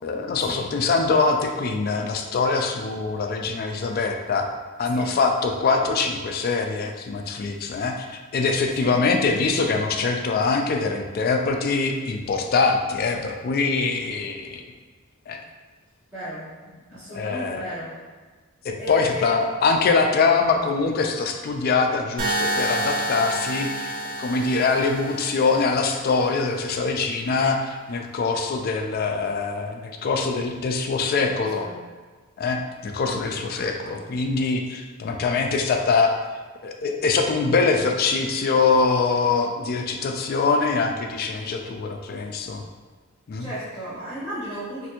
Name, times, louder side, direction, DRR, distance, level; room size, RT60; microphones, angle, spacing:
voice 1, 0.0-4.5 4.8-14.6 15.3-15.4 17.1-17.6 18.6-31.7 32.4-36.1 36.6-42.6 43.3-43.5, left 4 dB, 45° left, 4 dB, 0.3 m, -23 dB
voice 2, 16.1-16.4 16.9-17.9 18.8-19.5 31.3-31.8 43.4-44.9, equal, 10° right, -15 dB, 1.0 m, -34 dB
sound 1, 22.2-26.2, right 1 dB, 40° right, 0.6 m, -29 dB
3.2 x 2.6 x 2.8 m, 1.4 s
head